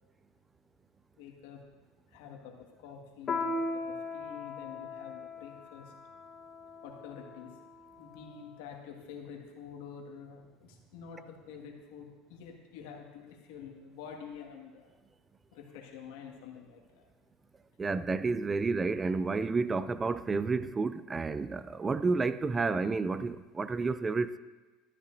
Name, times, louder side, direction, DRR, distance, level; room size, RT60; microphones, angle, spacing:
voice 1, 1.2-1.6 2.1-5.9 6.8-7.5 8.0-14.9 15.5-17.0, left 7 dB, 80° left, 1.7 m, -48 dB
Piano, 3.3-8.2, left 3 dB, 35° left, 1.4 m, -38 dB
voice 2, 17.8-24.4, right 4 dB, 20° right, 0.3 m, -30 dB
13.0 x 12.5 x 2.6 m
supercardioid pair, 115°, 0 cm